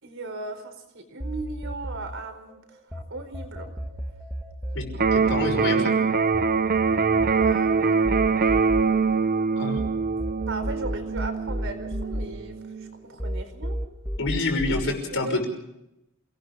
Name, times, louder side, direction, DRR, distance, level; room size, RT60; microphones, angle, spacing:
voice 1, 0.0-3.7 7.3-8.0 10.4-13.8 15.1-15.4, right 3 dB, 65° right, 6 dB, 4.5 m, -37 dB
sound 1, 1.2-3.0 3.3-9.9 10.2-12.9 13.2-14.8, equal, ahead, 2.1 m, -33 dB
Electric guitar, 4.9-12.9, right 5 dB, 45° right, 0.9 m, -24 dB
voice 2, 5.1-5.9 9.6-9.8 14.2-15.5, left 2 dB, 65° left, 4 dB, 6.0 m, -27 dB
28.5 x 19.0 x 5.0 m, 0.85 s
head